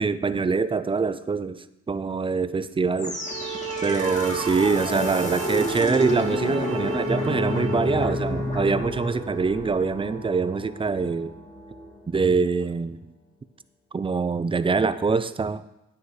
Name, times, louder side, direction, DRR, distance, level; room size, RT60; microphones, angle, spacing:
voice 1, 0.0-3.2 3.8-11.3 12.1-13.1 13.9-15.6, right 4 dB, 20° right, 14 dB, 0.4 m, -24 dB
sound 1, 3.0-12.1, left 1 dB, 25° left, 2.1 m, -30 dB
sound 2, 3.1-8.1, right 6 dB, 45° right, 0.9 m, -34 dB
9.5 x 9.3 x 3.2 m, 0.89 s
cardioid pair, 90°, 30 cm